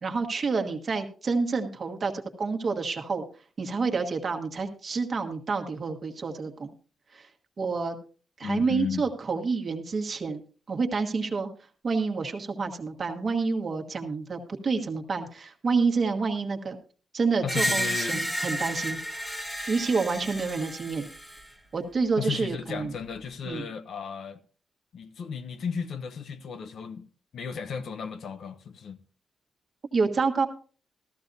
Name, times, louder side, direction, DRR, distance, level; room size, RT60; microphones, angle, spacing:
voice 1, 0.0-3.3 3.6-6.7 7.1-7.3 7.6-8.0 8.4-10.4 10.7-11.5 11.8-16.8 17.1-19.0 19.7-21.1 21.7-22.9 23.4-23.7 29.9-30.5, right 4 dB, 35° right, 1.4 m, -28 dB
voice 2, 8.4-9.0 17.4-18.3 22.2-24.4 24.9-27.1 27.3-29.0, left 6 dB, 60° left, 0.8 m, -34 dB
Screech, 17.5-21.5, equal, 5° left, 1.1 m, -32 dB
14.0 x 14.0 x 2.7 m
wide cardioid pair, 180°, 0 cm